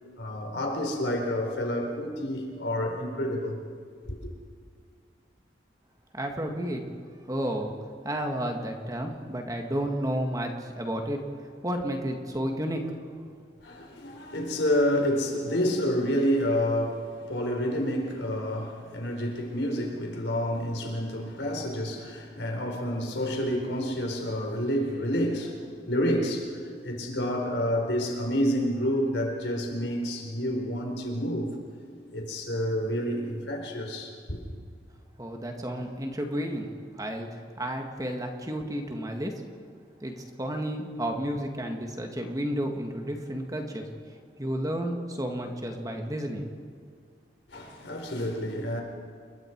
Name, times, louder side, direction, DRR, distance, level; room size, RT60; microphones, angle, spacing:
voice 1, 0.2-3.6 4.0-4.2 13.6-31.6 32.1-34.4 47.5-48.8, equal, 80° left, 4.4 m, -29 dB
voice 2, 6.1-6.8 7.3-7.7 8.0-11.2 11.6-13.0 35.2-39.3 40.0-43.9 44.4-46.5, right 1 dB, 20° right, 1.9 m, -32 dB
28.5 x 22.0 x 4.7 m
head